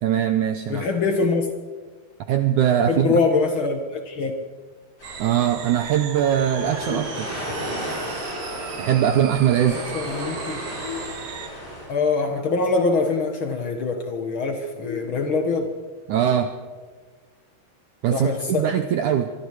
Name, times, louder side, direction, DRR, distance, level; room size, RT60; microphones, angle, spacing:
voice 1, 0.0-0.9 2.3-3.2 5.2-7.3 8.8-9.8 16.1-16.5 18.0-19.3, right 10 dB, 80° right, 8 dB, 1.8 m, -21 dB
voice 2, 0.7-1.5 2.9-4.4 9.7-10.6 11.9-15.7 18.1-18.7, left 4 dB, 85° left, 5 dB, 1.1 m, -24 dB
sound 1, 5.0-11.9, equal, 25° left, 7.1 m, -34 dB
sound 2, 5.0-11.5, right 8 dB, 60° right, 2.8 m, -37 dB
sound 3, 6.8-7.8 10.8-11.8 14.8-15.8, left 7 dB, 30° right, 8.0 m, -38 dB
25.0 x 22.5 x 4.8 m, 1.4 s
omnidirectional pair, 4.6 m